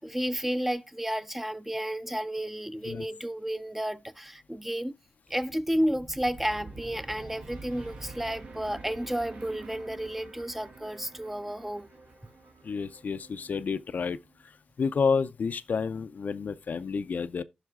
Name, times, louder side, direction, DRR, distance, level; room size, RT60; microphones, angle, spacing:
voice 1, 0.0-5.0 5.3-11.9, equal, 5° right, 0.5 m, -32 dB
sound 1, 5.3-14.4, right 3 dB, 75° right, 2.0 m, -47 dB
voice 2, 12.6-14.2 14.8-17.4, left 5 dB, 60° left, 0.5 m, -29 dB
15.0 x 5.5 x 2.3 m
cardioid pair, 60°, 3 cm